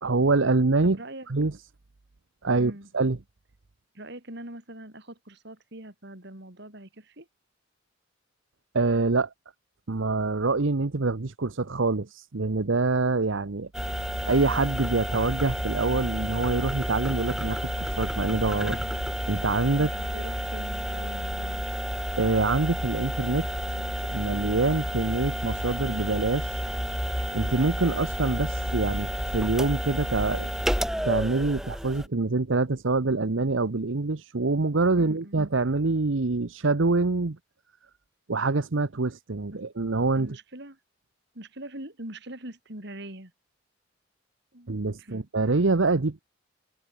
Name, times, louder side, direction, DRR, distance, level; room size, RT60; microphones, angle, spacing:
voice 1, 0.0-1.0 1.3-1.6 2.4-3.2 8.7-9.3 9.9-13.7 14.3-19.9 22.2-23.5 24.1-26.6 27.3-30.5 31.0-37.4 38.3-40.4 44.7-46.2, right 3 dB, 75° right, 0.9 m, -25 dB
voice 2, 0.8-1.3 2.5-2.9 3.9-7.3 19.7-21.6 35.0-35.5 39.5-39.6 40.1-40.8 41.3-43.3 44.5-44.7 45.0-45.2, right 1 dB, 60° right, 5.1 m, -42 dB
sound 1, 13.7-32.1, equal, ahead, 1.2 m, -31 dB
head